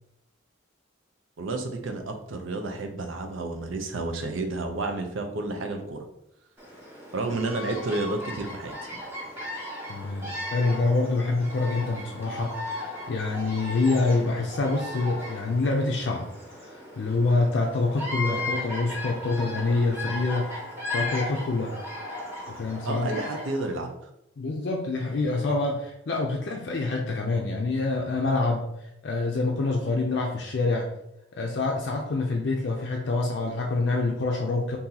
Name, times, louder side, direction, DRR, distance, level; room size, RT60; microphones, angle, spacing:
voice 1, 1.4-6.1 7.1-8.8 22.9-24.1, right 2 dB, 85° right, 5 dB, 0.6 m, -31 dB
Bird vocalization bird call bird song, 6.6-23.8, left 2 dB, 10° right, 0.9 m, -36 dB
voice 2, 9.9-16.3 17.0-20.5 20.9-21.7 22.5-23.1 24.4-28.7 29.0-30.9 31.3-34.8, left 3 dB, 60° left, 0 dB, 0.4 m, -26 dB
2.7 x 2.6 x 3.8 m, 0.82 s
head